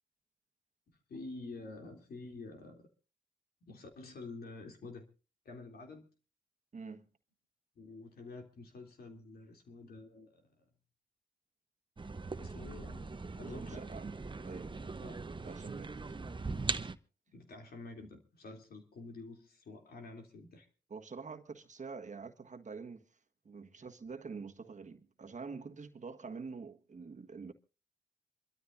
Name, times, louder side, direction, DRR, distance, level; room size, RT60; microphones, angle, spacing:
voice 1, 1.1-2.9 3.6-5.1 5.4-6.1 7.7-10.5 12.4-13.1 13.4-13.8 15.0-15.2 17.3-20.7, left 3 dB, 70° left, 3.0 m, -48 dB
voice 2, 6.7-7.1 13.4-14.2 14.4-14.8 15.4-16.0 20.9-23.0 23.4-27.5, right 5 dB, 45° right, 1.5 m, -46 dB
sound 1, 12.0-17.0, right 3 dB, 30° right, 0.9 m, -40 dB
27.5 x 13.0 x 2.6 m
supercardioid pair, 45°, 17 cm